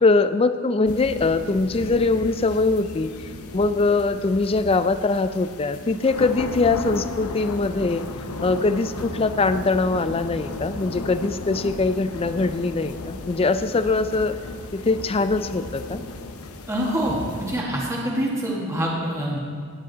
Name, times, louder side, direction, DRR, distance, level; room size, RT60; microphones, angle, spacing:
voice 1, 0.0-3.1 3.5-8.0 8.4-14.3 14.7-16.0, left 3 dB, 25° left, 12 dB, 0.4 m, -22 dB
sound 1, 0.9-17.6, left 2 dB, 80° left, 0.9 m, -35 dB
voice 2, 16.7-19.4, equal, 15° right, -3 dB, 1.6 m, -25 dB
17.0 x 10.0 x 4.0 m, 2.1 s
head